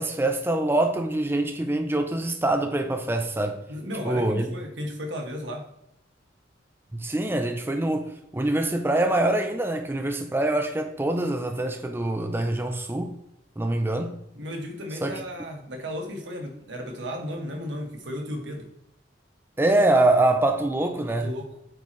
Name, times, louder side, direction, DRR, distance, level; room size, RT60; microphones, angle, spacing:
voice 1, 0.0-3.6 4.0-4.5 6.9-13.1 13.6-14.2 15.0-15.2 19.6-21.3, right 2 dB, 15° right, 0.5 m, -24 dB
voice 2, 3.7-5.6 14.3-18.7 21.1-21.5, equal, 90° right, 1.5 m, -34 dB
8.4 x 4.4 x 3.1 m
head